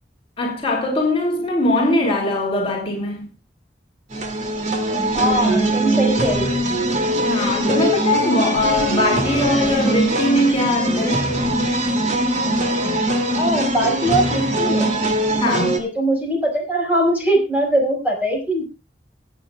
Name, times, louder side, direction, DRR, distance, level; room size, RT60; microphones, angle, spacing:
voice 1, 0.4-3.3 7.2-11.2 15.4-15.8, left 1 dB, 30° left, 3.1 m, -21 dB
sound 1, 4.1-15.8, right 1 dB, 40° right, 2.6 m, -21 dB
voice 2, 5.1-6.6 13.4-14.9 15.4-18.6, right 1 dB, 10° right, 5.4 m, -21 dB
26.0 x 8.7 x 2.4 m
head